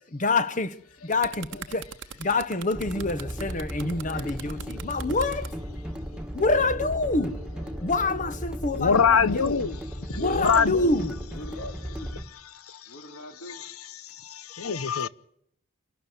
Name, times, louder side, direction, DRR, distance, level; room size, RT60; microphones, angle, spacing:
voice 1, 0.1-1.9 2.2-5.5 6.3-7.4 7.8-9.6 10.1-11.2, left 3 dB, 35° left, 1.0 m, -27 dB
sound 1, 0.8-5.5 6.4-6.6, right 7 dB, 55° right, 1.0 m, -42 dB
sound 2, 2.7-12.2, equal, 5° right, 1.7 m, -35 dB
voice 2, 4.0-4.4 5.3-5.4 6.5-8.4 10.1-11.0 11.3-12.1 12.9-13.6, left 1 dB, 65° left, 2.8 m, -42 dB
voice 3, 8.8-9.8 10.1-10.8 12.7-12.9 13.5-13.7 14.1-15.1, left 6 dB, 85° left, 0.9 m, -24 dB
27.0 x 12.0 x 8.3 m
head